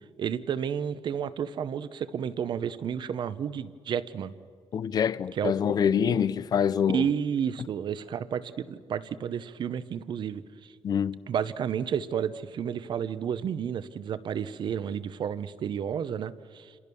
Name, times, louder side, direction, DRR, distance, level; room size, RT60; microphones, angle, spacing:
voice 1, 0.2-4.3 5.3-5.5 5.8-6.2 6.9-10.7 11.3-16.7, right 8 dB, 50° right, 0.9 m, -31 dB
voice 2, 4.7-7.1 10.8-11.2, left 8 dB, 40° left, 0.6 m, -25 dB
29.0 x 26.5 x 7.0 m
cardioid pair, 175°, 10 cm